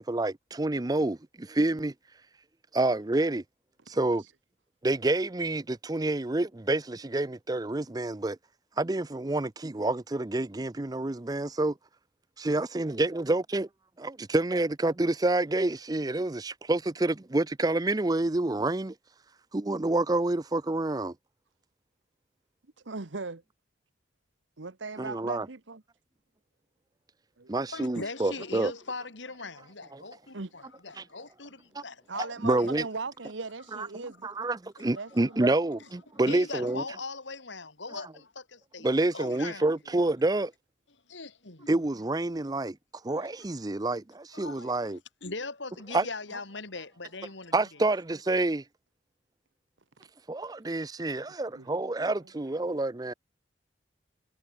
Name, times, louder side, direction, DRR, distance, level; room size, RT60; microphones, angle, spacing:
voice 1, 0.0-1.9 2.7-3.4 3.9-4.2 4.8-8.4 8.8-11.7 12.4-13.7 14.0-18.9 19.5-21.1 25.0-25.4 27.5-28.7 29.9-30.0 31.0-31.1 31.8-31.9 32.4-32.8 33.8-33.9 34.2-36.8 38.8-40.5 41.7-42.8 43.0-45.0 45.9-46.1 47.5-48.6 50.3-53.1, right 2 dB, 20° right, 0.5 m, -28 dB
voice 2, 22.8-23.4 24.6-25.8 27.4-27.5 30.3-30.5 32.1-34.3 34.9-35.5 50.8-51.7, right 4 dB, 90° right, 1.2 m, -39 dB
voice 3, 27.7-32.3 32.6-32.7 34.8-34.9 35.8-35.9 36.1-39.6 41.1-41.7 43.2-43.3 44.3-47.8, left 3 dB, 85° left, 3.6 m, -40 dB
head